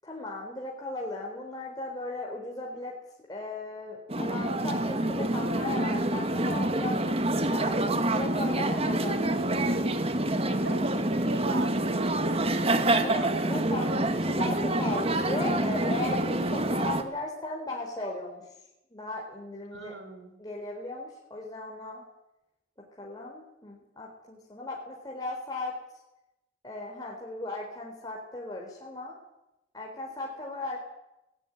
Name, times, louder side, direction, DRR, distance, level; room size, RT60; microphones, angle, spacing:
voice 1, 0.0-3.0 3.3-7.1 7.4-7.8 8.1-9.2 13.0-13.9 14.2-18.5 18.9-20.0 20.4-22.0 23.0-25.8 26.6-29.2 29.7-30.8, left 2 dB, 20° left, -2 dB, 4.0 m, -36 dB
sound 1, 4.1-17.0, right 1 dB, 30° right, 1.9 m, -27 dB
voice 2, 10.5-12.0 12.2-12.8 13.0-14.1 19.7-20.3, right 2 dB, 85° right, 6 dB, 5.7 m, -40 dB
19.0 x 18.0 x 9.8 m, 0.90 s
head